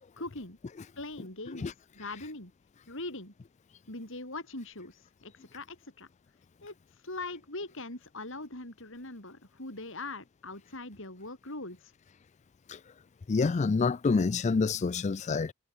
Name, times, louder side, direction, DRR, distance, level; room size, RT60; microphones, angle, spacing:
voice 1, 0.2-0.6 1.0-1.7 1.9-2.5 2.9-3.3 3.9-6.1 6.6-6.7 7.0-11.9, left 2 dB, 60° left, 7.4 m, -41 dB
voice 2, 13.3-15.5, left 4 dB, 30° left, 0.4 m, -27 dB
head